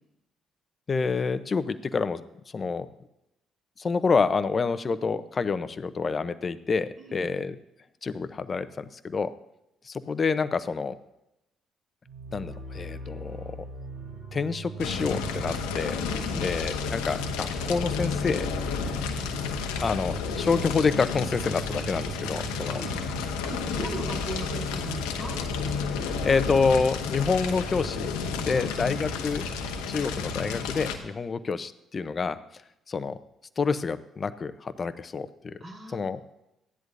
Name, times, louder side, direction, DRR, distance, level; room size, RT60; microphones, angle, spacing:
voice 1, 0.9-2.9 3.8-7.6 8.0-9.3 9.8-11.0 12.3-13.6 14.3-16.0 16.3-18.5 19.8-22.8 26.2-28.1 28.4-29.5 29.9-32.4 32.9-33.2 33.6-35.6 35.9-36.2, left 4 dB, 40° left, 13 dB, 0.7 m, -28 dB
voice 2, 7.0-7.3 16.0-16.5 22.6-23.1 23.4-25.3 28.5-28.8 35.6-36.0, right 2 dB, 45° right, -1 dB, 3.7 m, -38 dB
sound 1, 12.1-25.7, right 1 dB, 75° right, 3.7 m, -41 dB
Fire, 14.8-31.0, left 5 dB, 85° left, 1.0 m, -31 dB
15.0 x 10.5 x 2.6 m, 0.88 s
hypercardioid pair, 50°, 0 cm